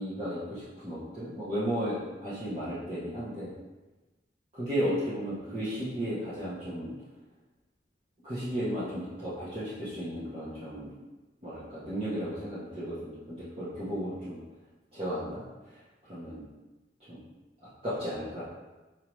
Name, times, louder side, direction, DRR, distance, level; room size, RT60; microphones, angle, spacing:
voice 1, 0.0-3.5 4.5-6.9 8.2-10.9 11.4-14.4 14.9-15.8 16.1-16.4 17.1-17.2 17.6-18.4, equal, 35° right, -11 dB, 0.8 m, -34 dB
4.6 x 2.8 x 3.0 m, 1.1 s
head